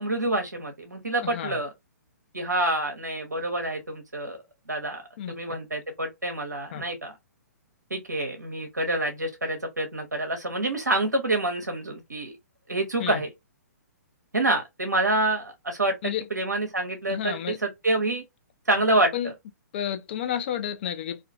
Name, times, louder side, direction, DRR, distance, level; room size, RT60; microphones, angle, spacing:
voice 1, 0.0-1.7 2.3-4.4 4.7-7.1 7.9-12.3 12.7-13.3 14.3-15.9 16.3-18.2 18.7-19.1, right 2 dB, 80° right, 0.6 m, -27 dB
voice 2, 1.2-1.6 5.2-5.4 6.7-6.8 13.0-13.2 16.0-16.2 17.1-17.6 19.1-19.3 19.7-21.3, left 10 dB, 40° left, 0.4 m, -31 dB
2.3 x 2.2 x 2.4 m
figure-of-eight pair, 120°, 9 cm